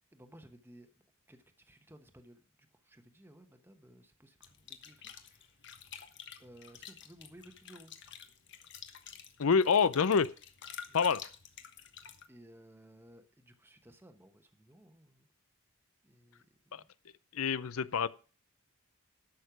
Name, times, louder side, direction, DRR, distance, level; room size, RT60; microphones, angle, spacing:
voice 1, 0.1-0.9 1.3-2.4 2.8-5.0 5.3-5.4 6.4-7.9 10.9-11.0 12.3-15.3 16.0-16.9, right 1 dB, 10° right, 1.1 m, -57 dB
sound 1, 4.4-12.3, left 8 dB, 55° left, 1.3 m, -50 dB
voice 2, 9.4-10.3 10.9-11.2 16.7-16.8 17.3-18.1, left 6 dB, 75° left, 0.6 m, -26 dB
11.5 x 6.6 x 6.0 m
head